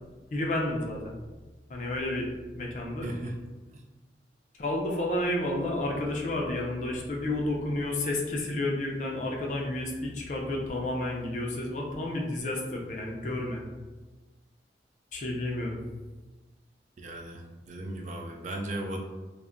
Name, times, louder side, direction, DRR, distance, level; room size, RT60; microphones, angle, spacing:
voice 1, 0.3-1.2 1.7-2.3 2.6-3.1 4.6-13.6 15.1-15.8, left 1 dB, 45° left, -1 dB, 0.5 m, -31 dB
voice 2, 3.0-3.4 17.0-19.0, right 1 dB, 40° right, 2 dB, 0.3 m, -36 dB
2.2 x 2.1 x 3.6 m, 1.2 s
head